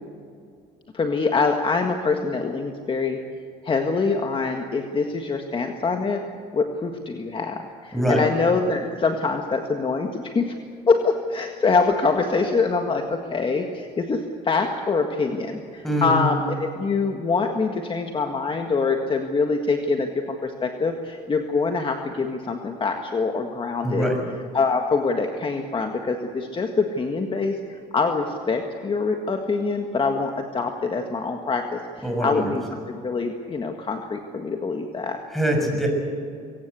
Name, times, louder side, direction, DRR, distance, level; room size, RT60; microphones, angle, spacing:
voice 1, 0.9-3.2 3.6-6.2 6.5-10.5 10.9-24.1 24.5-35.2, left 4 dB, 30° left, 4 dB, 1.7 m, -24 dB
voice 2, 7.9-8.2 15.8-16.3 23.8-24.2 32.0-32.5 35.3-35.9, equal, ahead, 2 dB, 6.4 m, -23 dB
22.0 x 18.0 x 8.4 m, 2.4 s
cardioid pair, 110°, 17 cm